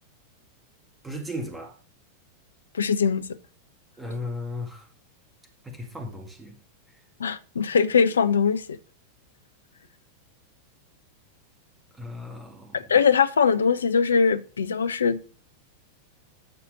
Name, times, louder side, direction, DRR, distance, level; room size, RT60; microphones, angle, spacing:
voice 1, 1.0-1.8 4.0-4.9 5.6-6.6 12.0-12.9, left 1 dB, 10° right, 2.3 m, -36 dB
voice 2, 2.7-3.2 7.2-8.8 12.7-15.2, left 6 dB, 70° left, 0.8 m, -21 dB
12.0 x 4.3 x 6.6 m
figure-of-eight pair, 90°, 0 cm